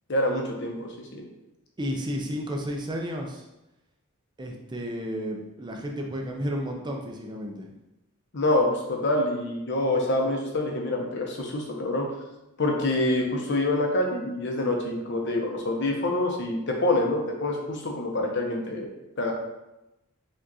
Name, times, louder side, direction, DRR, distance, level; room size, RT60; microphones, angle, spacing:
voice 1, 0.1-1.2 8.3-12.1 12.6-18.9 19.2-19.3, left 1 dB, 55° left, 1 dB, 0.8 m, -26 dB
voice 2, 1.8-3.4 4.4-7.7, equal, 20° right, 1 dB, 0.4 m, -32 dB
5.0 x 2.4 x 4.0 m, 0.95 s
head